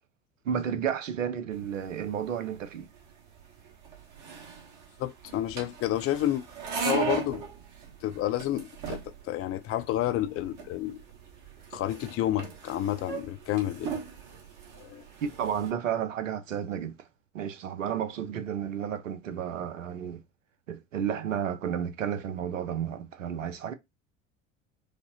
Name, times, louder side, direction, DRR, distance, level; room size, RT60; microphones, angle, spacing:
voice 1, 0.5-2.9 15.2-16.9 17.3-20.2 20.7-23.7, right 8 dB, 85° right, 0.6 m, -32 dB
sound 1, 1.5-15.7, right 6 dB, 50° right, 1.5 m, -39 dB
voice 2, 5.0-6.4 6.8-7.4 8.0-11.0 11.7-14.0 14.7-15.0, left 13 dB, 40° left, 0.5 m, -30 dB
5.0 x 2.1 x 2.7 m
hypercardioid pair, 70°, 37 cm